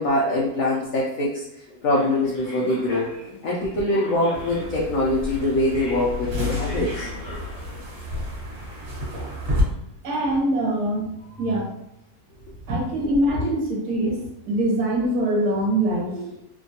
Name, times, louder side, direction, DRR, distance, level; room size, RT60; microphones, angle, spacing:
voice 1, 0.0-7.1, left 1 dB, 70° left, -4 dB, 0.8 m, -24 dB
sound 1, 1.9-8.6, equal, 35° left, 0.8 m, -40 dB
sound 2, 4.3-9.6, left 1 dB, 45° right, 1.4 m, -31 dB
voice 2, 10.0-11.7 12.7-16.4, right 1 dB, 65° right, -3 dB, 1.4 m, -24 dB
3.3 x 2.2 x 2.7 m, 0.82 s
omnidirectional pair, 1.9 m